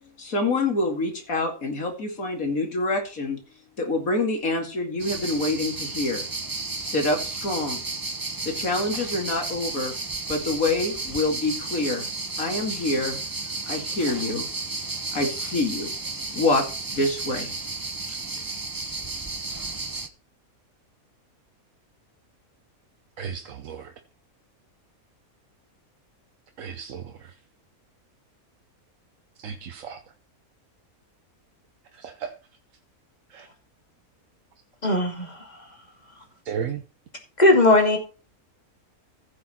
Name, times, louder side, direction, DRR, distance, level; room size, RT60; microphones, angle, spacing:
voice 1, 0.2-3.4 3.8-6.2 6.7-7.8 8.5-9.9 10.3-12.0 12.4-13.2 13.7-14.5 15.1-15.9 16.3-16.6 16.9-17.6, left 2 dB, 70° left, 3 dB, 2.7 m, -26 dB
sound 1, 5.0-20.1, right 3 dB, 25° right, 0.5 m, -33 dB
voice 2, 23.2-23.9 26.6-27.3 29.4-30.0 31.9-32.3 33.3-33.5 36.4-36.8, right 7 dB, 65° right, 6 dB, 1.2 m, -34 dB
voice 3, 34.8-35.5 37.4-38.0, left 2 dB, 30° left, 2 dB, 2.7 m, -18 dB
15.5 x 6.3 x 4.3 m, 0.34 s
omnidirectional pair, 1.5 m